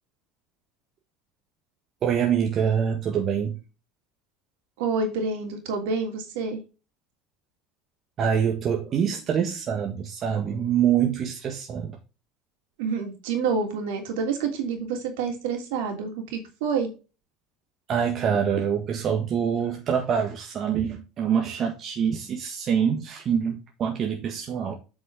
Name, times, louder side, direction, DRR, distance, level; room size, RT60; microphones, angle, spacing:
voice 1, 2.0-3.6 8.2-12.0 17.9-24.8, right 8 dB, 45° right, 1.6 m, -25 dB
voice 2, 4.8-6.6 12.8-16.9, right 5 dB, 70° right, 3.0 m, -28 dB
8.1 x 6.2 x 3.7 m
hypercardioid pair, 70°, 0 cm